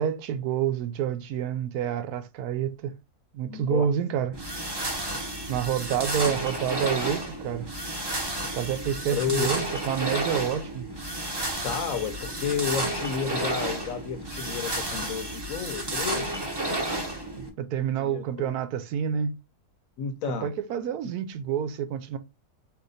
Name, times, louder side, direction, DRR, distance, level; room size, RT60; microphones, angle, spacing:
voice 1, 0.0-2.9 3.3-4.3 5.5-7.7 8.5-10.9 17.4-19.3 20.4-22.2, right 9 dB, 80° right, 1.1 m, -28 dB
voice 2, 3.4-3.9 9.1-9.5 11.6-16.4 18.0-18.5 20.0-20.5, left 7 dB, 65° left, 1.1 m, -31 dB
sound 1, 4.3-17.5, right 1 dB, 25° right, 0.6 m, -31 dB
4.4 x 2.9 x 3.9 m
omnidirectional pair, 1.6 m